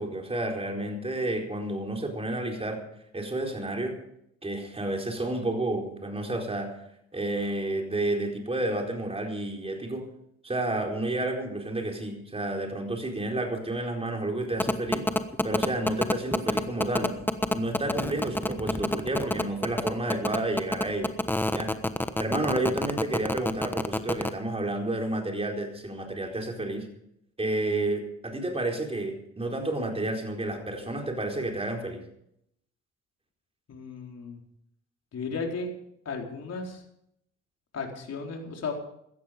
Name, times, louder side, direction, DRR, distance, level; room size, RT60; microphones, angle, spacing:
voice 1, 0.0-2.8 3.1-4.0 4.4-6.8 7.1-10.1 10.4-15.1 15.4-17.2 17.5-21.1 21.5-21.8 22.2-26.9 27.4-32.0, right 2 dB, 20° right, 2 dB, 4.4 m, -30 dB
sound 1, 14.6-24.3, left 1 dB, 5° left, 1.2 m, -26 dB
voice 2, 33.7-34.4 35.1-35.7 36.0-36.8 37.7-38.7, left 4 dB, 55° left, 1 dB, 4.3 m, -34 dB
16.5 x 13.5 x 5.2 m, 0.75 s
cardioid pair, 90°, 30 cm